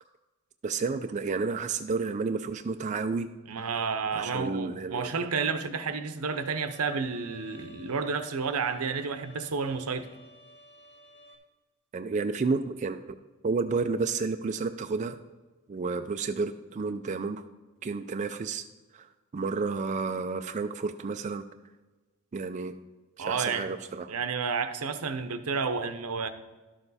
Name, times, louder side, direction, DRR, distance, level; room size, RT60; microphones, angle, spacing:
voice 1, 0.6-3.3 4.1-5.1 11.9-13.2 13.4-15.2 15.7-17.4 17.8-18.6 18.9-21.4 22.3-22.7 23.2-24.1, right 4 dB, 35° right, 7 dB, 0.3 m, -31 dB
voice 2, 3.5-10.1 23.2-23.7 24.1-26.3, right 5 dB, 80° right, 10 dB, 0.8 m, -31 dB
Bowed string instrument, 6.3-11.4, left 2 dB, 55° left, 1.9 m, -53 dB
11.5 x 6.8 x 4.1 m, 1.2 s
head